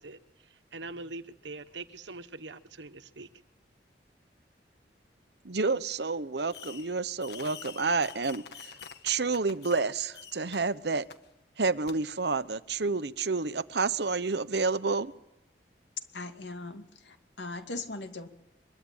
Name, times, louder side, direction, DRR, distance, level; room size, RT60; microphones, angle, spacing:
voice 1, 0.0-3.3, right 3 dB, 90° right, 1.4 m, -43 dB
voice 2, 5.4-8.7 9.0-11.1 11.6-15.1, right 4 dB, 65° right, 1.0 m, -29 dB
Fireworks, 6.5-6.9 7.2-9.9 10.1-10.6 11.1-11.2 11.9-12.0, left 7 dB, 65° left, 1.5 m, -46 dB
voice 3, 16.1-18.3, left 3 dB, 85° left, 2.4 m, -40 dB
24.0 x 22.5 x 9.0 m
head